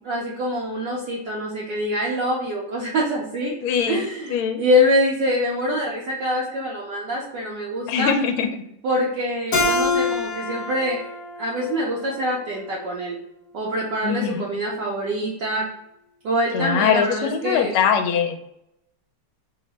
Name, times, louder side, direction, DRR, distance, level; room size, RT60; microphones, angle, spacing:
voice 1, 0.0-3.5 3.9-8.1 8.8-11.0 11.4-13.2 13.5-15.6 16.2-17.7, equal, 70° right, -4 dB, 1.1 m, -24 dB
voice 2, 3.6-4.6 7.9-8.5 10.0-10.1 14.0-14.5 16.5-18.4, left 7 dB, 80° left, 5 dB, 1.4 m, -22 dB
Keyboard (musical), 9.5-12.8, left 3 dB, 50° left, 1.1 m, -26 dB
3.7 x 2.1 x 3.9 m, 0.79 s
omnidirectional pair, 2.4 m